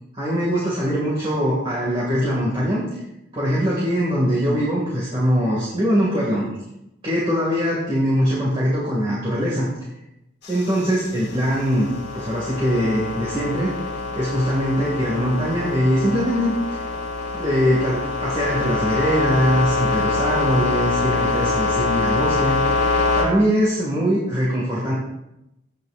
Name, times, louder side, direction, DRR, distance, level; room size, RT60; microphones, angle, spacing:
voice 1, 0.1-2.8 3.3-6.4 7.0-9.7 10.5-11.9 12.1-13.7 14.2-16.5 17.3-22.7 23.1-24.9, equal, 25° right, -6 dB, 2.3 m, -22 dB
sound 1, 10.4-23.3, left 3 dB, 55° left, 2.2 m, -25 dB
17.0 x 6.4 x 2.6 m, 0.88 s
head